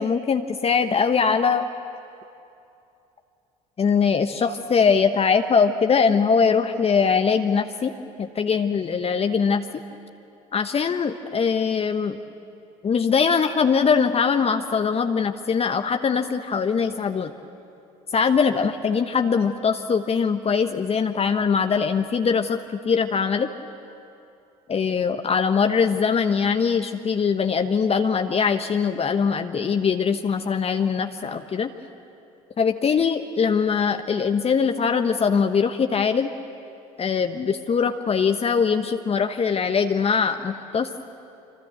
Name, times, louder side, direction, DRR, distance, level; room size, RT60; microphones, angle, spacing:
voice 1, 0.0-1.7 3.8-7.9 8.2-9.6 10.5-12.2 12.8-17.3 18.1-23.5 24.7-31.7 32.6-36.3 37.0-40.9, left 6 dB, 35° left, 7 dB, 1.1 m, -22 dB
26.5 x 25.5 x 7.8 m, 2.7 s
hypercardioid pair, 60°, 18 cm